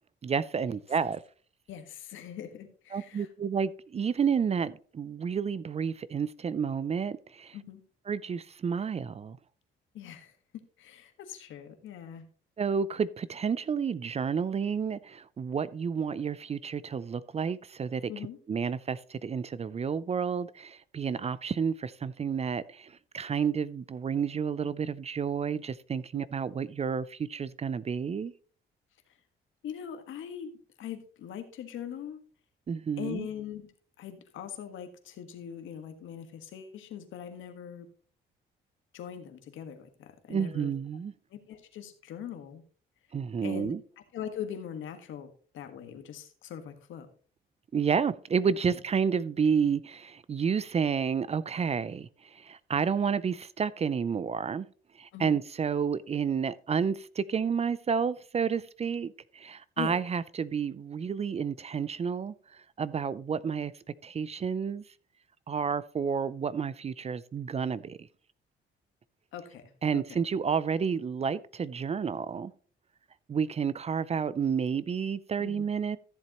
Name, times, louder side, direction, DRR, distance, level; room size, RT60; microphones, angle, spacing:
voice 1, 0.2-1.2 2.9-7.6 8.1-9.4 12.6-18.1 18.5-28.3 32.7-33.3 40.3-41.1 43.1-43.8 47.7-54.7 55.0-63.7 64.0-64.8 65.5-68.1 69.8-72.5 73.3-76.0, right 6 dB, 30° right, 0.4 m, -30 dB
voice 2, 1.7-3.3 7.5-7.8 9.9-10.3 10.8-12.3 18.1-18.4 26.1-26.2 29.6-30.5 30.8-32.2 33.0-33.7 34.0-37.9 38.9-40.7 41.3-42.6 43.4-43.7 44.1-47.1 48.7-48.8 55.1-55.4 59.8-60.0 69.3-70.2 75.4-75.6, left 9 dB, 80° left, 1.5 m, -41 dB
14.0 x 7.4 x 2.9 m
cardioid pair, 90°, 20 cm